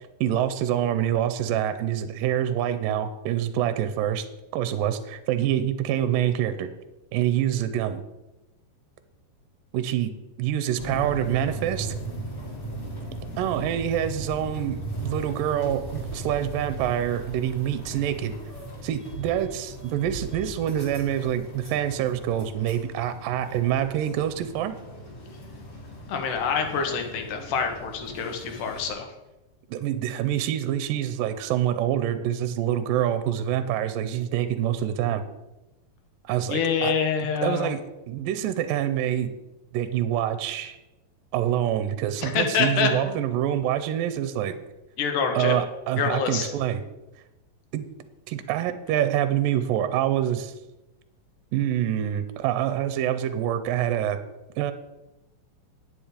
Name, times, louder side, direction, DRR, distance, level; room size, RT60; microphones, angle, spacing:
voice 1, 0.2-4.3 4.5-6.7 7.1-8.0 9.7-11.9 13.4-18.3 18.8-24.8 29.7-35.2 36.3-36.9 37.2-37.8 38.1-39.3 39.7-40.8 41.3-44.5 45.3-46.8 47.7-47.9 48.3-50.5 51.5-54.2 54.6-54.7, right 11 dB, 80° right, 11 dB, 2.2 m, -26 dB
sound 1, 10.8-28.9, right 2 dB, 30° left, 2.0 m, -37 dB
voice 2, 26.1-29.1 36.5-37.7 42.2-43.2 45.0-45.6 46.0-46.5, left 6 dB, 65° left, 4 dB, 2.7 m, -26 dB
10.0 x 9.4 x 5.1 m, 0.99 s
omnidirectional pair, 4.2 m